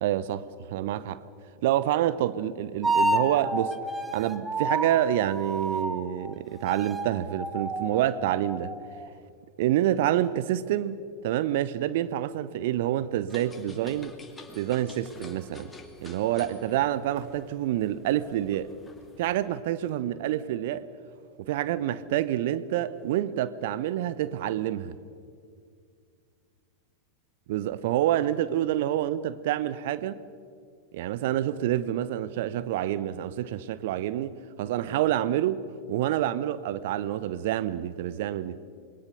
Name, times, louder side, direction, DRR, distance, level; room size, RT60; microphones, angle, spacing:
voice 1, 0.0-1.2 1.6-3.7 4.1-8.8 9.6-14.2 14.6-15.7 16.0-18.7 19.2-20.9 21.4-25.0 27.5-30.2 30.9-35.6 35.9-38.6, right 12 dB, 50° right, 0.9 m, -27 dB
sound 1, 2.8-6.3 6.6-9.1, right 2 dB, 10° right, 1.6 m, -30 dB
sound 2, 13.3-19.5, left 2 dB, 10° left, 2.7 m, -49 dB
28.0 x 22.0 x 6.9 m
figure-of-eight pair, 90°, 0 cm